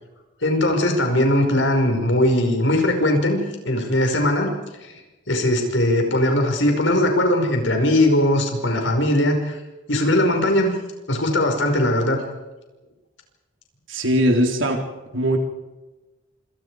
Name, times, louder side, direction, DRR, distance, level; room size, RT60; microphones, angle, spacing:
voice 1, 0.4-3.4 3.7-4.5 4.8-4.9 5.3-9.6 9.9-10.8 11.1-12.2, left 1 dB, 70° left, 4 dB, 5.3 m, -19 dB
voice 2, 13.9-14.8 15.1-15.4, equal, 85° right, 3 dB, 3.6 m, -20 dB
27.5 x 26.0 x 4.9 m, 1.1 s
head